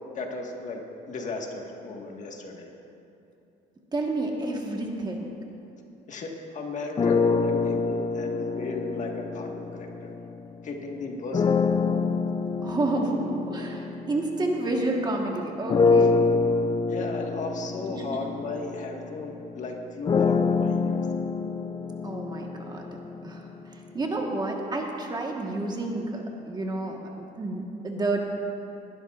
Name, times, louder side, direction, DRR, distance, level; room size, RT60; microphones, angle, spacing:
voice 1, 0.1-0.8 1.1-2.7 6.1-10.1 10.6-11.8 16.9-21.0, left 3 dB, 45° left, 1 dB, 1.5 m, -35 dB
voice 2, 3.9-5.3 12.6-16.2 17.9-18.2 22.0-22.8 23.2-28.3, right 2 dB, 25° right, 1 dB, 1.3 m, -30 dB
sound 1, 7.0-10.5 11.3-15.1 15.7-23.7, left 4 dB, 25° left, 0.4 m, -26 dB
20.5 x 12.0 x 2.4 m, 2.8 s
cardioid pair, 110°, 17 cm